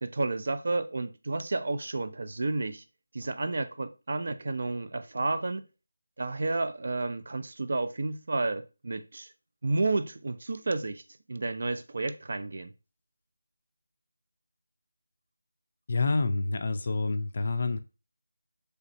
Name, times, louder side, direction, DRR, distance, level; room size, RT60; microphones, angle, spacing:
voice 1, 0.0-2.8 3.1-5.7 6.2-9.3 9.6-11.0 11.3-12.7, right 3 dB, 50° right, 0.4 m, -31 dB
voice 2, 15.9-17.8, left 3 dB, 40° left, 0.3 m, -28 dB
3.3 x 2.9 x 2.7 m
figure-of-eight pair, 170°, 0 cm